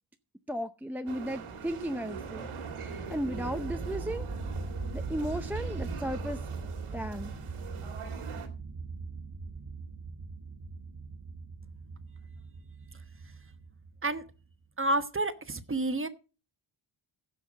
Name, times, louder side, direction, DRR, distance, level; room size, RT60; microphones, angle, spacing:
voice 1, 0.5-2.5 3.1-4.3 4.9-6.4 6.9-7.3, equal, 5° right, 0.6 m, -35 dB
sound 1, 1.1-8.5, right 5 dB, 90° right, 2.3 m, -43 dB
sound 2, 2.1-14.5, right 3 dB, 45° right, 1.7 m, -40 dB
voice 2, 14.8-16.1, right 2 dB, 25° right, 1.1 m, -29 dB
15.5 x 5.8 x 5.2 m
cardioid pair, 80°, 49 cm